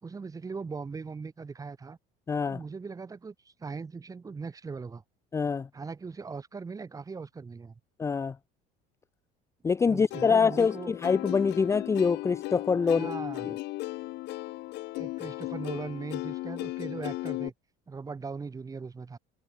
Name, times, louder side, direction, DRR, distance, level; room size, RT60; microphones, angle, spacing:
voice 1, 0.0-2.0 2.5-5.0 5.7-7.7 9.9-10.9 12.9-13.6 15.0-17.5 17.9-19.2, right 4 dB, 15° right, 4.3 m, -39 dB
voice 2, 2.3-2.6 5.3-5.7 8.0-8.4 9.6-13.1 13.4-13.6, left 5 dB, 15° left, 0.5 m, -25 dB
Plucked string instrument, 10.1-17.5, left 19 dB, 60° left, 1.6 m, -36 dB
cardioid pair, 150°, 20 cm